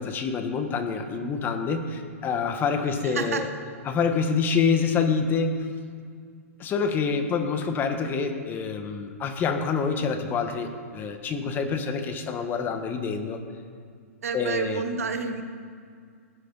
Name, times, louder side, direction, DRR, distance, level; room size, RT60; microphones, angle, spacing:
voice 1, 0.0-3.5 3.9-5.7 6.6-13.4 14.3-14.8, left 5 dB, 25° left, 6 dB, 1.3 m, -27 dB
voice 2, 3.0-3.5 14.2-15.4, right 5 dB, 75° right, 7 dB, 1.2 m, -29 dB
18.0 x 9.7 x 4.1 m, 2.2 s
hypercardioid pair, 120°, 8 cm